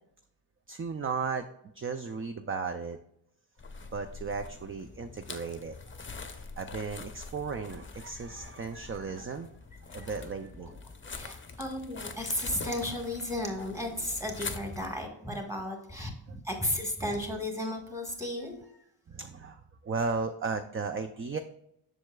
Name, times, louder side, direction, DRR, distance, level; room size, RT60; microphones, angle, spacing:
voice 1, 0.7-1.5 1.7-3.0 3.9-6.0 6.6-9.5 9.9-10.8 11.2-11.4 16.3-16.4 19.1-21.4, right 5 dB, 30° right, 8 dB, 0.3 m, -35 dB
sound 1, 3.6-15.0, left 4 dB, 25° left, 0.6 m, -44 dB
voice 2, 11.1-18.8, left 1 dB, 5° right, 2 dB, 1.5 m, -34 dB
7.7 x 6.5 x 2.3 m, 0.75 s
wide cardioid pair, 125°, 48 cm